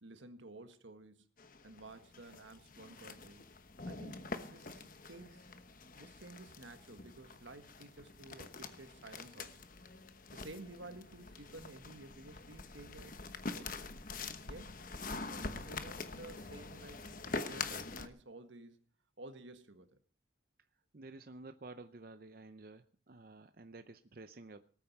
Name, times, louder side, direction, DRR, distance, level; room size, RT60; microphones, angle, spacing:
voice 1, 0.0-1.3 1.6-3.4 3.8-5.5 5.9-9.6 10.3-13.2 13.5-13.9 14.5-14.8 15.2-17.0 17.3-18.8 19.2-20.0, right 2 dB, 80° right, 1.6 m, -53 dB
sound 1, 1.4-18.1, left 3 dB, 45° left, 1.1 m, -45 dB
voice 2, 20.9-24.7, right 2 dB, 50° right, 0.7 m, -52 dB
19.0 x 9.0 x 5.9 m
head